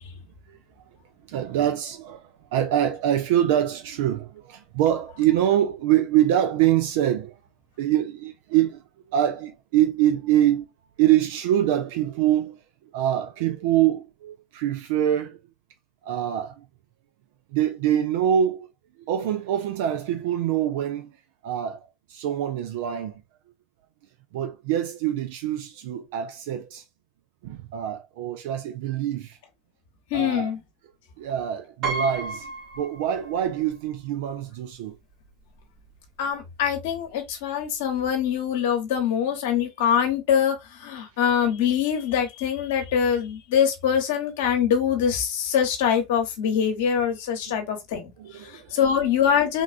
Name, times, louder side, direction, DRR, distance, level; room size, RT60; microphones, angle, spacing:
voice 1, 1.3-7.4 7.8-8.8 9.1-10.7 11.0-12.6 12.9-15.4 16.0-16.7 17.5-18.7 19.1-21.1 21.4-21.8 22.1-23.2 24.3-26.8 27.4-29.4 30.1-30.5 31.2-35.0 47.5-47.6 48.2-48.8, right 11 dB, 75° right, 0.3 m, -24 dB
voice 2, 30.1-30.6 36.2-49.6, left 8 dB, 75° left, 0.9 m, -24 dB
Piano, 31.8-33.6 34.0-34.1 35.2-35.3 35.6-35.9, right 3 dB, 55° right, 1.3 m, -32 dB
3.5 x 2.3 x 2.4 m
hypercardioid pair, 80°, 0 cm